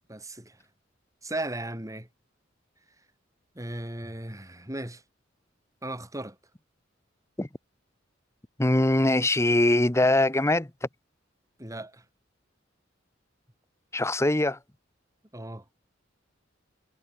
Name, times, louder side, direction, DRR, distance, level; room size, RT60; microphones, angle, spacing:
voice 1, 0.1-0.6 1.2-2.1 3.5-5.0 5.8-6.3 11.6-12.0 15.3-15.6, right 1 dB, 15° right, 6.8 m, -36 dB
voice 2, 8.6-10.7 13.9-14.6, left 1 dB, 15° left, 1.1 m, -22 dB
head